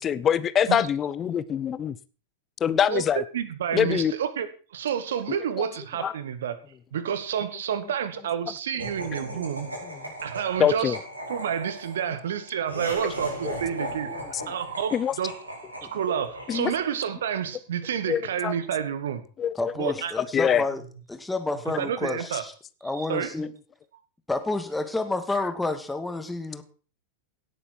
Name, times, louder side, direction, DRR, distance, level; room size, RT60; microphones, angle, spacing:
voice 1, 0.0-2.0 2.6-3.2 3.7-4.1 5.6-5.7 6.0-6.1 9.3-9.5 10.6-11.0 13.4-13.5 14.9-15.1 16.5-16.7 18.1-18.5 19.4-19.5 19.9-20.6, left 8 dB, 25° left, 16 dB, 0.7 m, -24 dB
voice 2, 2.9-6.6 6.9-9.7 10.2-11.0 11.3-14.1 14.5-15.4 15.9-19.2 19.8-20.1 21.8-22.4 23.0-23.3, right 8 dB, 60° right, 13 dB, 1.6 m, -29 dB
Laughter, 8.8-17.2, right 1 dB, 80° right, 5.0 m, -37 dB
voice 3, 19.6-20.8 21.1-22.5 22.8-23.5 24.3-26.6, left 2 dB, 5° left, 8 dB, 1.8 m, -29 dB
17.0 x 8.7 x 4.5 m, 0.38 s
figure-of-eight pair, 90°, 0 cm